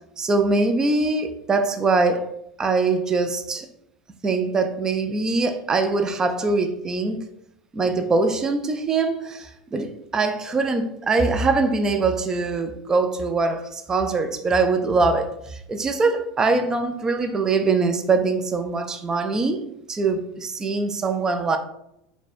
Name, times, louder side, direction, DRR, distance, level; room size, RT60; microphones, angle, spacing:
voice 1, 0.2-2.3 2.6-3.7 4.2-7.2 7.7-19.6 19.9-21.6, right 3 dB, 25° right, 0.5 m, -23 dB
4.1 x 2.3 x 4.2 m
hypercardioid pair, 95°, 3 cm